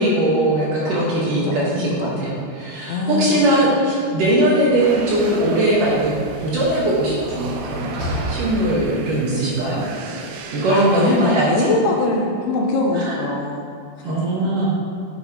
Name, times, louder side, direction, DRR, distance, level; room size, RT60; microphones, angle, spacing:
voice 1, 0.0-6.1 6.4-8.0 8.3-9.8 10.5-11.7 12.9-13.1 14.0-14.7, right 1 dB, 60° right, -6 dB, 2.6 m, -20 dB
voice 2, 0.9-2.2 2.9-3.6 10.7-13.7 14.1-14.2, left 2 dB, 80° left, 1 dB, 2.7 m, -23 dB
Slam, 4.7-9.2, equal, 35° left, 2.2 m, -34 dB
sound 1, 4.8-11.2, right 4 dB, 80° right, 2.7 m, -35 dB
11.0 x 8.0 x 3.0 m, 2.3 s
omnidirectional pair, 4.9 m